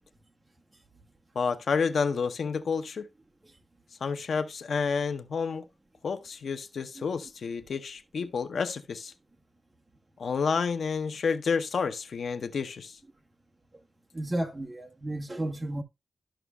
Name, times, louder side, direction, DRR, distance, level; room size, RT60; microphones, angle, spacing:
voice 1, 1.3-3.1 4.0-5.6 6.0-9.1 10.2-13.0, left 5 dB, 80° left, 0.7 m, -30 dB
voice 2, 14.1-15.8, right 1 dB, 20° right, 1.2 m, -33 dB
12.5 x 6.0 x 2.2 m
wide cardioid pair, 180°, 0 cm